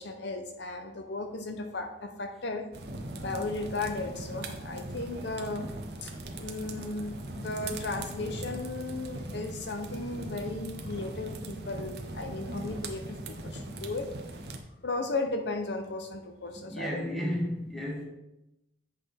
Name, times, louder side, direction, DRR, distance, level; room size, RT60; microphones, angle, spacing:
voice 1, 0.0-2.7 3.2-5.7 6.0-6.1 6.4-14.1 14.8-17.0, left 3 dB, 60° left, 6 dB, 0.6 m, -35 dB
sound 1, 2.7-14.6, right 1 dB, 55° right, 0.8 m, -40 dB
voice 2, 16.6-18.0, equal, ahead, -3 dB, 1.5 m, -33 dB
8.4 x 5.8 x 3.3 m, 0.91 s
head